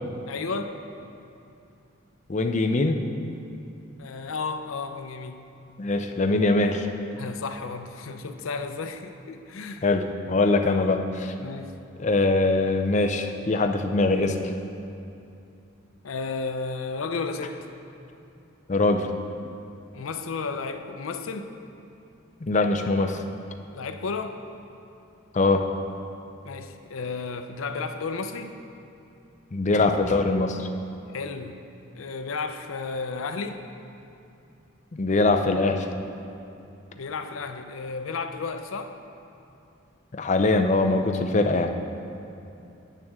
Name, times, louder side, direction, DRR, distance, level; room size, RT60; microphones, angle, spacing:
voice 1, 0.3-0.8 4.0-5.4 7.1-9.9 10.7-10.9 11.4-11.8 16.0-17.6 19.9-21.5 23.7-24.4 26.4-28.6 31.1-31.5 31.9-33.6 36.9-39.0, left 4 dB, 85° left, 7 dB, 0.5 m, -33 dB
voice 2, 2.3-3.0 5.8-6.9 9.8-11.0 12.0-14.4 18.7-19.1 22.4-23.2 25.3-25.6 29.5-30.7 34.9-35.9 40.2-41.7, left 2 dB, 35° left, 5 dB, 0.5 m, -22 dB
9.1 x 8.7 x 3.6 m, 2.7 s
head